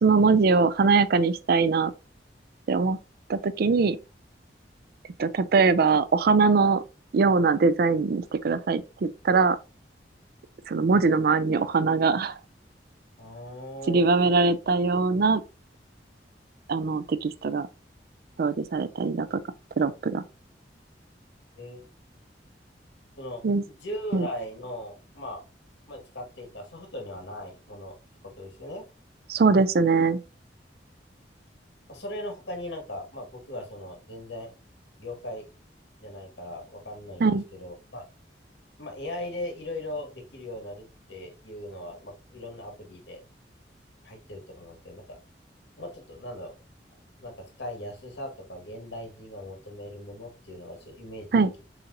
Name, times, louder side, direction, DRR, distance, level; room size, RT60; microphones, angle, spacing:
voice 1, 0.0-1.9 2.7-3.0 3.3-4.0 5.2-6.8 7.1-9.6 10.7-12.4 13.9-15.4 16.7-17.7 18.4-19.4 19.8-20.2 23.4-23.6 24.1-24.3 29.3-30.2 37.2-37.4 51.3-51.5, right 4 dB, 55° right, 0.4 m, -22 dB
voice 2, 13.2-14.1 21.6-21.9 23.2-25.4 25.9-28.0 28.2-28.8 31.9-34.5 35.0-35.5 36.0-38.0 38.8-43.2 44.0-45.2 45.8-46.6 47.2-51.6, left 1 dB, 85° left, 1.7 m, -39 dB
6.9 x 2.9 x 2.6 m
head